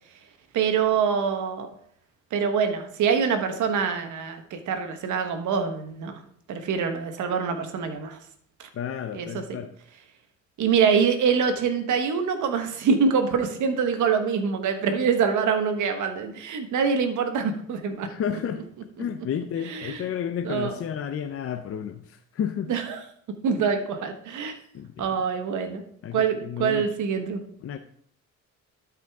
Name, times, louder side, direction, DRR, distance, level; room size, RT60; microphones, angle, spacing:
voice 1, 0.5-1.7 2.3-6.2 6.5-8.2 8.6-8.7 9.1-9.4 10.6-18.1 19.6-20.1 20.4-20.8 22.7-23.0 23.4-24.6 25.0-25.8 26.1-27.4, right 6 dB, 80° right, 7 dB, 1.3 m, -25 dB
voice 2, 8.7-9.7 18.0-18.6 19.0-22.7 24.7-25.1 26.0-26.9 27.6-27.8, left 8 dB, 50° left, 7 dB, 0.6 m, -31 dB
12.0 x 5.1 x 3.5 m, 0.64 s
cardioid pair, 90°, 30 cm